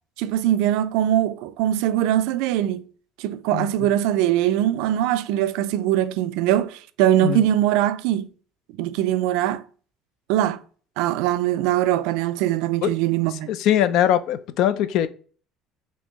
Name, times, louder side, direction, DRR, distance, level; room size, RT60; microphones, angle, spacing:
voice 1, 0.2-2.8 3.2-8.3 8.8-9.6 10.3-10.6 11.0-13.5, right 12 dB, 90° right, 0.3 m, -22 dB
voice 2, 3.5-3.9 7.2-7.4 12.8-12.9 13.5-15.1, left 11 dB, 65° left, 0.3 m, -21 dB
4.4 x 3.1 x 2.9 m
cardioid pair, 135°, 0 cm